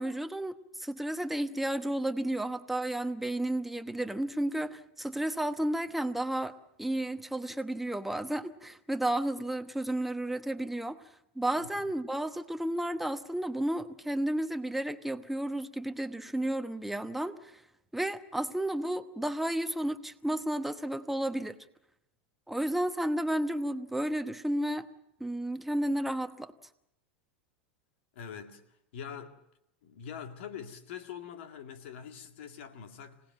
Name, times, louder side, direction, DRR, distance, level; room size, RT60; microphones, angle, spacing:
voice 1, 0.0-11.0 11.3-17.6 17.9-21.6 22.5-24.9 25.2-26.5, right 1 dB, 5° right, 1.0 m, -32 dB
voice 2, 28.1-29.4 29.8-33.2, left 8 dB, 70° left, 2.1 m, -44 dB
26.0 x 18.0 x 7.5 m
hypercardioid pair, 110°, 7 cm